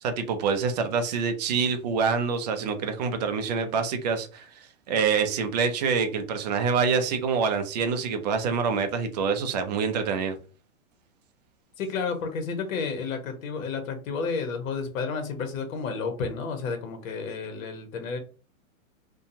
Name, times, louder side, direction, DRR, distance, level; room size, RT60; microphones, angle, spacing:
voice 1, 0.0-10.4, right 5 dB, 30° right, 0.4 m, -26 dB
voice 2, 11.8-18.2, left 5 dB, 70° left, 1.0 m, -31 dB
2.7 x 2.2 x 2.6 m
hypercardioid pair, 140°, 42 cm